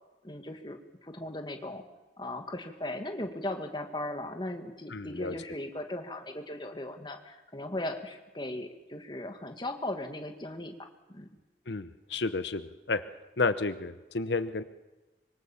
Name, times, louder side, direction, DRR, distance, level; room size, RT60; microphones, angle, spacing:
voice 1, 0.2-1.8 2.2-10.7 11.1-11.3, left 1 dB, 25° left, 5 dB, 2.0 m, -38 dB
voice 2, 4.9-5.3 11.7-13.0 13.4-14.6, left 3 dB, 80° left, 11 dB, 0.9 m, -31 dB
25.0 x 23.0 x 7.1 m, 1.1 s
head